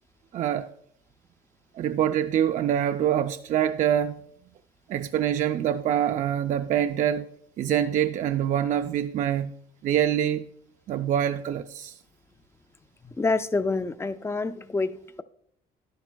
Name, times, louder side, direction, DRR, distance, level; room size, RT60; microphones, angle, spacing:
voice 1, 0.3-0.7 1.8-4.1 4.9-7.2 7.6-9.5 9.8-10.4 10.9-11.9, right 10 dB, 50° right, 0.4 m, -25 dB
voice 2, 13.2-15.2, left 3 dB, 15° left, 0.4 m, -27 dB
11.0 x 10.5 x 2.2 m
cardioid pair, 110°, 17 cm